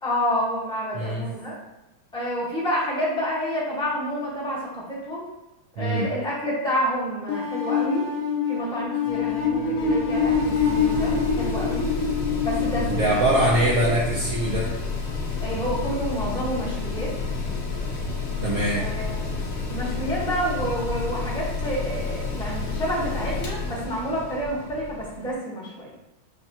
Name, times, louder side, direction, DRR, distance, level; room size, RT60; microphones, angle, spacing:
voice 1, 0.0-1.6 2.1-5.3 5.8-8.1 8.5-11.9 12.4-13.3 15.4-17.1 18.7-19.3 19.7-25.9, equal, 5° left, -7 dB, 0.6 m, -29 dB
voice 2, 0.9-1.3 5.8-6.1 12.9-14.7 18.4-18.8, right 1 dB, 75° right, -5 dB, 0.7 m, -22 dB
sound 1, 7.3-14.2, left 5 dB, 80° left, 1.4 m, -25 dB
Mechanical fan, 9.0-25.3, left 4 dB, 60° left, 0.9 m, -30 dB
5.8 x 2.4 x 2.8 m, 0.98 s
omnidirectional pair, 2.2 m